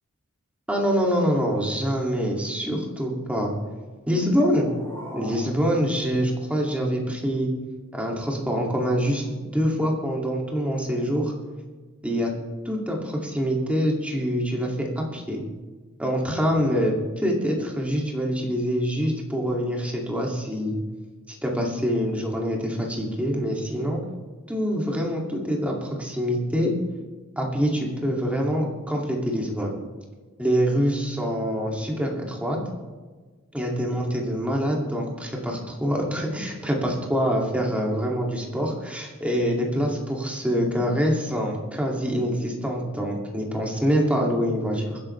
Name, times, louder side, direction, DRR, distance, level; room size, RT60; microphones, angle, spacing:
voice 1, 0.7-3.5 4.1-4.7 5.1-7.5 7.9-11.3 12.0-12.3 12.6-15.4 16.0-20.8 21.3-24.0 24.5-26.7 27.4-29.7 30.4-32.6 33.5-45.0, equal, 5° right, -1 dB, 2.4 m, -25 dB
sound 1, 4.1-7.1, equal, 10° left, 4.7 m, -43 dB
23.5 x 10.5 x 3.3 m, 1.4 s
head